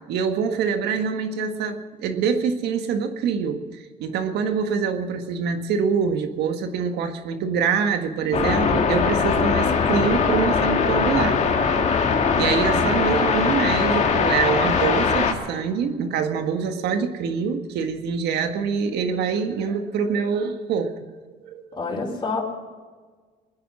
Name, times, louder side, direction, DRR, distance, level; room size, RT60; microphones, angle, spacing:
voice 1, 0.1-11.4 12.4-20.9 21.4-21.6, right 6 dB, 80° right, 7 dB, 1.7 m, -25 dB
sound 1, 8.3-15.3, left 5 dB, 45° left, 2.0 m, -21 dB
voice 2, 21.7-22.4, left 3 dB, 25° left, -3 dB, 4.2 m, -29 dB
22.5 x 10.0 x 6.3 m, 1.4 s
cardioid pair, 110°, 17 cm